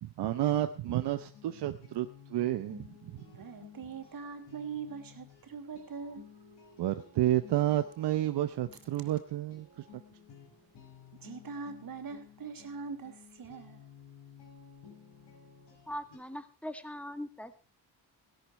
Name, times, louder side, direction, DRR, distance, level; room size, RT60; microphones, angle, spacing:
voice 1, 0.0-3.2 6.8-9.8, right 13 dB, 85° right, 9 dB, 0.9 m, -31 dB
sound 1, 0.6-16.2, left 7 dB, 90° left, 5.3 m, -55 dB
voice 2, 3.3-6.3 11.1-13.8, right 5 dB, 55° right, 6 dB, 2.9 m, -42 dB
voice 3, 15.9-17.6, equal, 5° left, 10 dB, 1.8 m, -41 dB
16.5 x 12.0 x 4.5 m, 0.34 s
cardioid pair, 85°, 40 cm